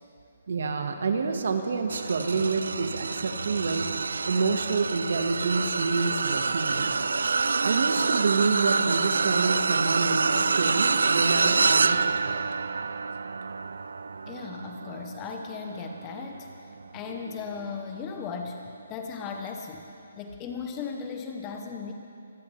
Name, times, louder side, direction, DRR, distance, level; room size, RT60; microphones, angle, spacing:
voice 1, 0.5-3.9 4.2-6.9 7.6-12.4 17.1-17.3, right 4 dB, 65° right, 7 dB, 1.3 m, -28 dB
sound 1, 1.9-17.4 17.9-18.2 19.4-19.5, right 4 dB, 85° right, 0.3 m, -27 dB
voice 2, 14.3-16.5 16.9-19.9 20.2-21.9, left 5 dB, 20° left, 4 dB, 0.7 m, -37 dB
25.5 x 14.0 x 3.2 m, 2.6 s
hypercardioid pair, 165°, 0 cm